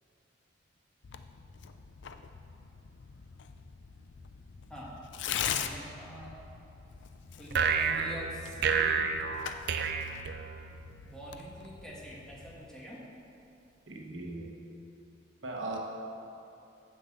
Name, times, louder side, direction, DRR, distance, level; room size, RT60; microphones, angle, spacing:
Tearing, 1.0-12.6, left 8 dB, 70° left, 0.4 m, -42 dB
voice 1, 5.5-6.3 7.4-9.2 11.0-13.0, equal, 5° left, -6 dB, 1.6 m, -45 dB
sound 1, 7.5-10.9, right 6 dB, 60° right, 0.5 m, -30 dB
voice 2, 13.9-14.5 15.4-15.8, right 2 dB, 90° right, 0 dB, 1.2 m, -38 dB
7.1 x 5.9 x 7.6 m, 2.8 s
head